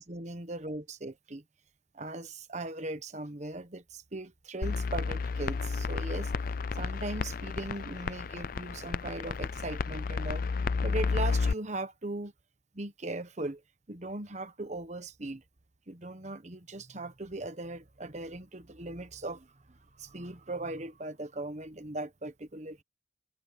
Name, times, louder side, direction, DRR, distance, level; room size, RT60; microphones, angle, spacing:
voice 1, 0.0-1.4 1.9-6.3 6.8-10.4 10.8-12.3 12.7-13.6 13.9-15.4 15.9-22.8, right 2 dB, 35° right, 1.1 m, -39 dB
sound 1, 4.6-11.5, left 4 dB, 45° left, 0.4 m, -32 dB
head